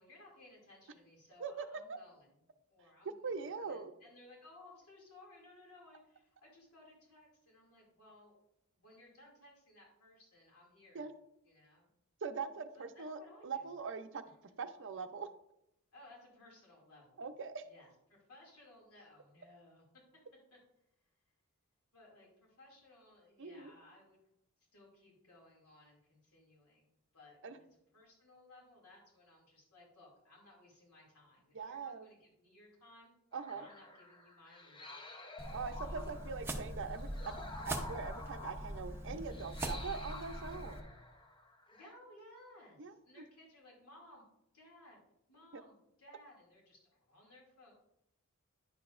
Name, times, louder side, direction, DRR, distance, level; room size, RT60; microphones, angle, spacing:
voice 1, 0.0-2.3 2.7-8.4 8.7-11.1 11.5-11.9 12.7-13.7 14.5-14.6 15.9-17.3 17.7-19.8 20.5-20.6 21.9-24.2 24.6-27.7 27.9-33.1 33.5-35.0 35.6-36.5 41.7-44.2 44.5-45.0 45.3-47.7, left 2 dB, 80° left, -2 dB, 2.6 m, -60 dB
voice 2, 1.4-2.0 3.2-3.9 10.9-11.1 12.2-14.2 14.6-15.3 17.2-17.6 23.4-23.7 27.4-27.6 31.5-32.1 33.3-33.7 35.5-40.8 42.8-43.2 45.5-45.6, right 5 dB, 55° right, 9 dB, 0.6 m, -42 dB
sound 1, 33.3-41.9, left 2 dB, 20° left, 0.8 m, -51 dB
sound 2, 35.4-40.8, right 1 dB, 10° right, 0.8 m, -42 dB
10.0 x 6.8 x 2.5 m, 0.80 s
head